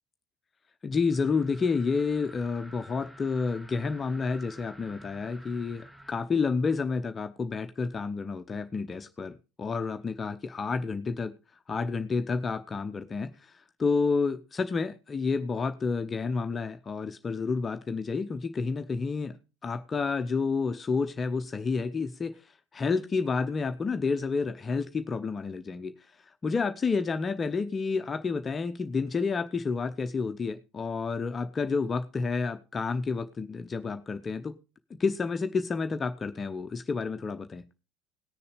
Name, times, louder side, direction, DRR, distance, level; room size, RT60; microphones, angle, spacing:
voice 1, 0.8-11.4 11.7-19.4 19.6-22.3 22.7-25.9 26.4-34.6 34.9-37.6, left 4 dB, 30° left, 0.8 m, -30 dB
sound 1, 1.1-6.1, equal, 5° right, 1.8 m, -51 dB
18.5 x 6.9 x 5.0 m
figure-of-eight pair, 60°, 0 cm